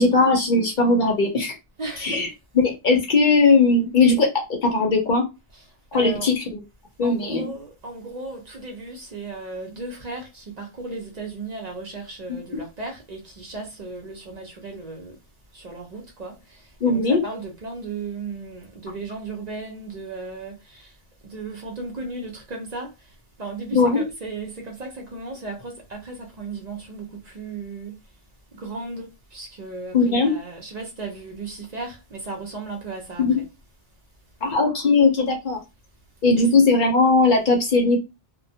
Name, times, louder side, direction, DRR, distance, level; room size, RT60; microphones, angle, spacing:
voice 1, 0.0-1.5 2.0-2.3 2.6-4.3 4.6-5.3 5.9-6.6 7.0-7.5 12.3-12.4 16.8-17.2 23.7-24.0 29.9-30.3 33.2-33.4 34.4-35.6 36.2-38.0, left 3 dB, 55° left, 0.7 m, -19 dB
voice 2, 1.8-2.3 5.5-6.3 7.0-15.2 15.5-21.0 21.2-28.0 28.6-33.4 36.4-36.5, right 3 dB, 50° right, 0.6 m, -36 dB
2.2 x 2.1 x 2.6 m
omnidirectional pair, 1.1 m